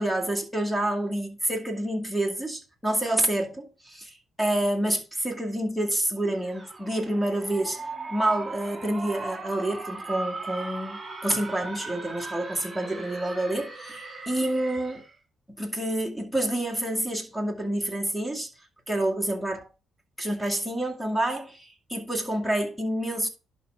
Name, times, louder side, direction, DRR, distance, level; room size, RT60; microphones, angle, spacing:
voice 1, 0.0-7.8 8.1-15.0 15.6-18.5 18.9-19.7 20.2-23.3, right 1 dB, ahead, 2.1 m, -28 dB
sound 1, 6.3-15.1, right 3 dB, 20° right, 4.2 m, -38 dB
11.0 x 4.6 x 3.6 m
cardioid pair, 90°, 0 cm